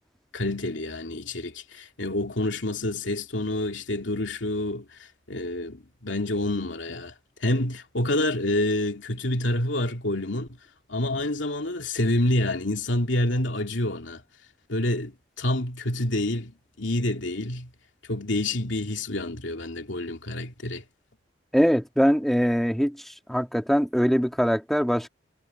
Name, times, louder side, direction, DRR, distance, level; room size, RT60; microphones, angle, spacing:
voice 1, 0.3-5.0 5.3-7.1 7.4-10.5 10.9-14.2 14.7-16.5 16.8-17.7 18.1-20.8, left 1 dB, 80° left, 2.6 m, -27 dB
voice 2, 21.5-23.0 23.3-25.1, equal, ahead, 2.2 m, -22 dB
head